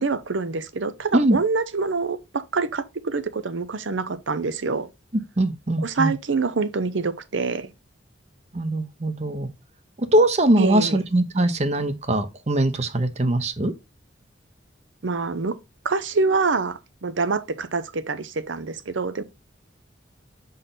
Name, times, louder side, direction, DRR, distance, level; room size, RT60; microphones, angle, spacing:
voice 1, 0.0-4.9 5.8-7.7 10.6-11.0 15.0-15.6 15.8-19.2, right 4 dB, 80° right, 0.7 m, -26 dB
voice 2, 5.4-6.1 8.5-9.5 10.0-13.7, right 1 dB, 35° right, 0.8 m, -21 dB
6.6 x 4.0 x 3.9 m
head